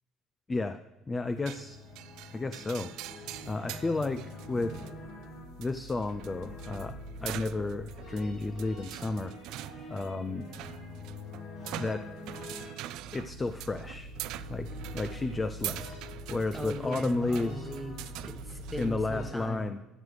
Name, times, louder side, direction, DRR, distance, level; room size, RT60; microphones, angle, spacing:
voice 1, 0.5-0.8 1.1-1.8 2.3-2.9 3.5-4.8 5.6-9.3 9.9-10.5 11.8-12.1 13.1-14.1 14.5-15.8 16.3-17.7 18.8-19.8, left 3 dB, 20° left, 11 dB, 0.4 m, -32 dB
sound 1, 1.0-19.3, left 2 dB, 80° left, 4.1 m, -45 dB
sound 2, 1.5-19.0, right 14 dB, 75° right, 0.3 m, -44 dB
voice 2, 16.5-19.7, equal, ahead, 6 dB, 1.1 m, -39 dB
14.0 x 7.9 x 3.2 m, 1.1 s
cardioid pair, 135°, 0 cm